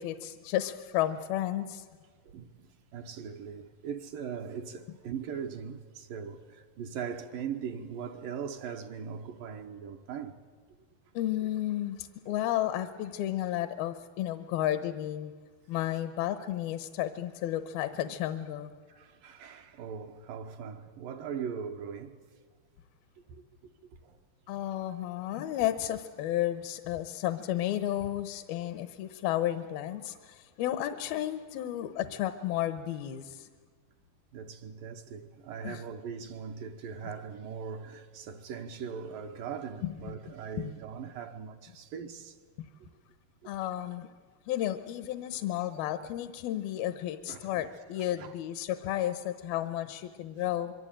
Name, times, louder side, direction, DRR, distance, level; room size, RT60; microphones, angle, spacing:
voice 1, 0.0-1.9 11.1-15.3 15.7-18.7 24.5-33.5 35.6-35.8 40.6-40.7 43.4-44.1 44.5-50.7, left 13 dB, 80° left, 2.7 m, -32 dB
voice 2, 2.2-10.4 18.9-22.2 23.3-23.4 23.9-24.2 34.3-42.4 42.8-42.9 43.4-43.5 47.3-47.7 48.0-48.3, right 7 dB, 70° right, 2.5 m, -40 dB
25.5 x 23.5 x 8.8 m
omnidirectional pair, 4.4 m